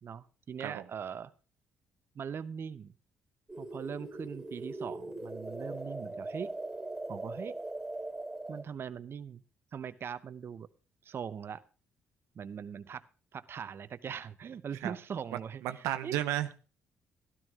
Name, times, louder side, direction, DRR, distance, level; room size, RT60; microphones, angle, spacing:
voice 1, 0.0-1.3 2.2-2.9 3.6-6.5 7.1-7.6 8.5-9.4 9.7-10.7 11.0-11.6 12.4-13.0 13.3-16.1, right 7 dB, 50° right, 12 dB, 0.7 m, -41 dB
sound 1, 3.5-8.6, right 2 dB, 10° right, 2.9 m, -40 dB
voice 2, 15.6-16.6, right 13 dB, 85° right, 10 dB, 0.7 m, -33 dB
12.5 x 12.5 x 3.6 m, 0.35 s
supercardioid pair, 70°, 5 cm